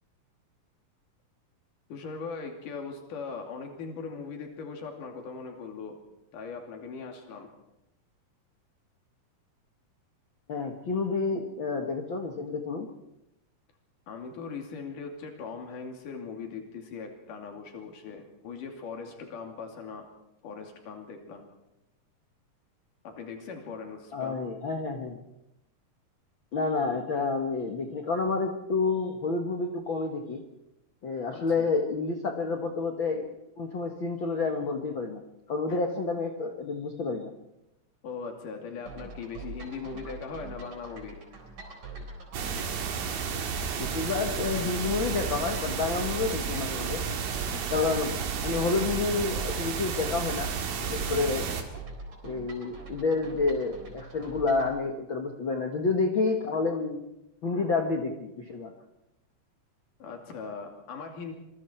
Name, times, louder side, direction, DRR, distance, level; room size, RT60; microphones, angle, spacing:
voice 1, 1.9-6.0 6.3-7.5 14.1-20.1 20.4-21.5 23.0-24.4 31.3-31.7 35.7-35.8 38.0-41.2 60.0-61.3, left 5 dB, 65° left, 3 dB, 4.2 m, -40 dB
voice 2, 10.5-12.9 24.1-25.2 26.5-30.4 31.0-33.3 33.6-35.2 35.5-37.3 43.8-47.0 47.7-48.2 48.4-50.5 50.9-51.5 52.2-57.0 57.4-58.7, left 4 dB, 50° left, 3 dB, 1.6 m, -29 dB
sound 1, 38.9-54.7, right 3 dB, 60° right, 5.5 m, -44 dB
sound 2, 42.3-51.6, right 6 dB, 75° right, 3.6 m, -32 dB
26.0 x 23.0 x 4.5 m, 0.89 s
omnidirectional pair, 4.0 m